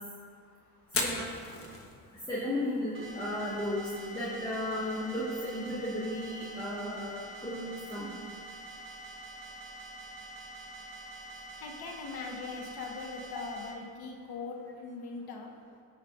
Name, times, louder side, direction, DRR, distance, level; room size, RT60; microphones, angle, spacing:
Fire, 0.8-14.7, left 3 dB, 35° left, 1.3 m, -45 dB
voice 1, 2.3-3.8 4.1-7.1 7.4-8.1, left 1 dB, 10° left, -9 dB, 1.6 m, -34 dB
sound 1, 2.9-13.7, right 2 dB, 30° right, 1.1 m, -46 dB
voice 2, 11.6-15.5, left 4 dB, 65° left, 0 dB, 1.3 m, -41 dB
16.0 x 5.3 x 2.5 m, 2.2 s
cardioid pair, 80°, 40 cm